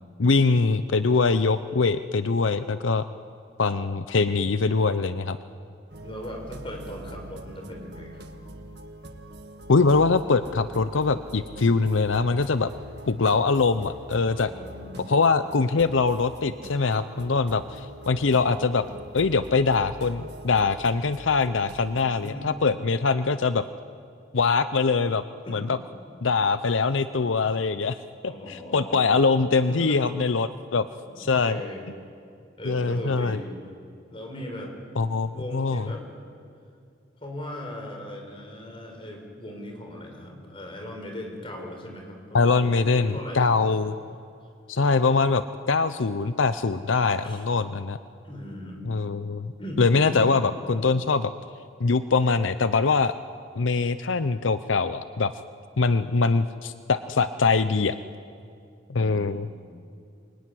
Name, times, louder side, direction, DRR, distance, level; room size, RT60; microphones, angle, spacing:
voice 1, 0.2-3.0 3.6-5.4 9.7-12.7 13.1-14.5 15.1-18.8 19.1-23.6 24.3-25.2 25.5-25.7 26.2-28.0 28.2-30.9 31.2-31.6 32.6-33.4 35.0-35.9 42.3-43.9 44.7-48.0 48.9-49.5 49.8-51.3 51.8-53.1 53.6-55.3 55.8-58.0 58.9-59.5, left 4 dB, 80° left, 12 dB, 0.7 m, -23 dB
sound 1, 5.9-22.3, right 1 dB, 60° right, 1.6 m, -43 dB
voice 2, 6.0-8.3 14.4-15.0 22.2-22.5 25.4-25.7 28.2-29.0 29.7-30.1 31.1-31.9 32.6-33.6 34.1-34.7 35.3-36.0 37.2-43.5 47.2-47.4 48.2-48.9 49.6-50.5 59.0-59.5, left 1 dB, 30° left, 2 dB, 4.9 m, -38 dB
26.5 x 22.5 x 9.9 m, 2.4 s
head